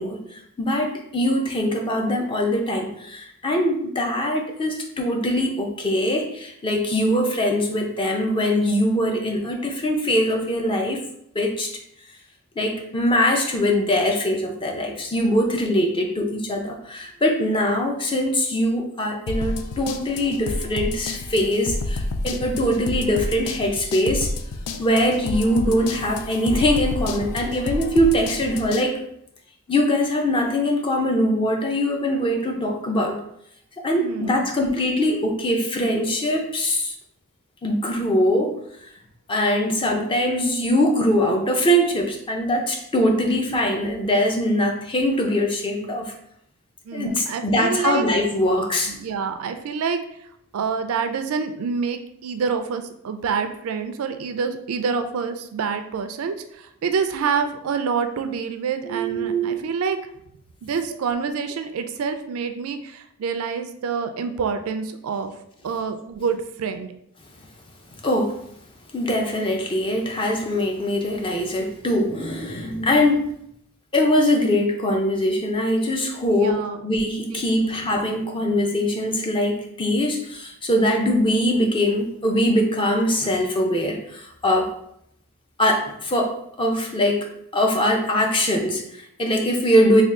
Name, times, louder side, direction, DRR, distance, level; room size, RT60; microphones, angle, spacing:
voice 1, 0.0-11.0 11.3-11.7 12.6-24.3 24.8-29.0 29.7-33.2 33.8-36.9 37.6-38.9 39.3-46.1 46.9-48.9 58.8-59.7 68.0-68.4 68.9-73.2 73.9-84.7 85.6-87.3 87.5-90.0, equal, 25° left, 2 dB, 0.5 m, -22 dB
sound 1, 19.3-28.9, left 2 dB, 85° left, 0.4 m, -30 dB
voice 2, 34.0-34.5 46.9-48.1 48.9-50.0 50.5-60.0 60.6-65.3 65.6-66.9 76.3-76.8 77.3-77.7, right 5 dB, 70° right, 8 dB, 0.3 m, -27 dB
3.5 x 2.3 x 3.7 m, 0.73 s
head